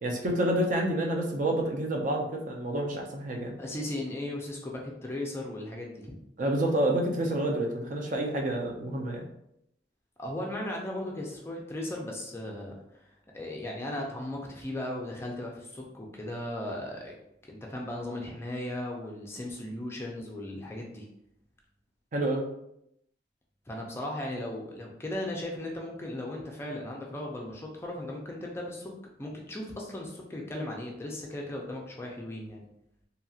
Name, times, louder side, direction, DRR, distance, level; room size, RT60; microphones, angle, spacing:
voice 1, 0.0-3.6 6.4-9.3 22.1-22.5, right 1 dB, 45° right, 1 dB, 0.5 m, -28 dB
voice 2, 3.6-6.2 10.2-12.7 13.3-17.1 17.5-21.1 23.7-28.9 29.2-32.6, left 1 dB, 15° left, -1 dB, 0.4 m, -37 dB
2.8 x 2.8 x 2.3 m, 0.78 s
head